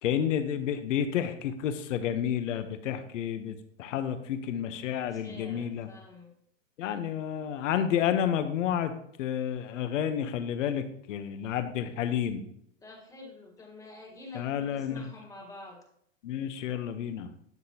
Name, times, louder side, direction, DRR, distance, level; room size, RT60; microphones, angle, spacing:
voice 1, 0.0-5.9 6.8-8.9 9.2-12.4 14.3-15.1 16.2-17.3, left 9 dB, 75° left, 9 dB, 1.1 m, -30 dB
voice 2, 5.1-6.3 12.8-15.8, left 2 dB, 10° left, 1 dB, 1.5 m, -47 dB
12.0 x 6.7 x 2.9 m, 0.70 s
hypercardioid pair, 135°, 38 cm